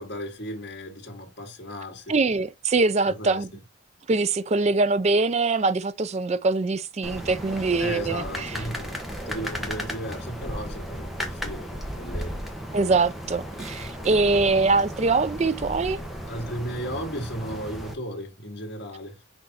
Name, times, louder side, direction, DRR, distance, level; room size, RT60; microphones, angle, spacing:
voice 1, 0.0-2.2 3.0-3.6 7.8-9.0 9.3-12.4 16.3-19.2, equal, 50° left, 2.1 m, -35 dB
voice 2, 2.1-3.5 4.1-8.5 12.7-16.0, right 3 dB, 30° right, 0.4 m, -23 dB
sound 1, 7.0-17.9, equal, ahead, 1.2 m, -35 dB
6.3 x 4.3 x 4.2 m
head